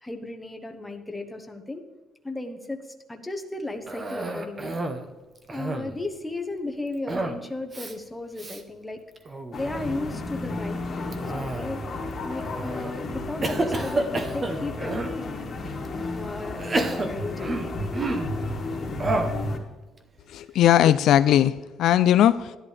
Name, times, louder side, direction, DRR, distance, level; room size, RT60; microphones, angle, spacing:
voice 1, 0.0-1.8 2.2-4.7 5.5-9.0 9.5-15.4 16.1-17.7, left 2 dB, 10° left, 0.9 m, -35 dB
Cough, 3.9-5.1 5.4-6.0 7.1-7.4 7.7-7.9 8.4-8.6 9.2-9.6 11.1-11.9 12.5-12.9 13.4-15.2 15.8-15.9 16.6-18.4 19.0-19.4, right 2 dB, 25° right, 0.8 m, -29 dB
sound 1, 9.5-19.6, left 2 dB, 35° left, 1.6 m, -33 dB
voice 2, 20.3-22.6, left 11 dB, 65° left, 0.3 m, -19 dB
12.5 x 11.0 x 3.3 m
cardioid pair, 150°, 0 cm